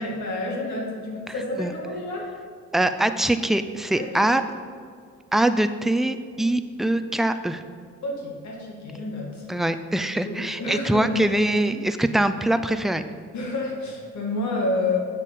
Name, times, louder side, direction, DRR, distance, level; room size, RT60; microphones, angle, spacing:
voice 1, 0.0-2.3 4.0-4.3 8.0-9.5 10.2-11.1 13.3-15.0, left 2 dB, 70° left, -1 dB, 2.3 m, -29 dB
voice 2, 2.7-4.4 5.3-7.6 9.5-13.0, right 1 dB, ahead, 9 dB, 0.4 m, -23 dB
8.2 x 6.4 x 5.3 m, 2.1 s
cardioid pair, 90°, 30 cm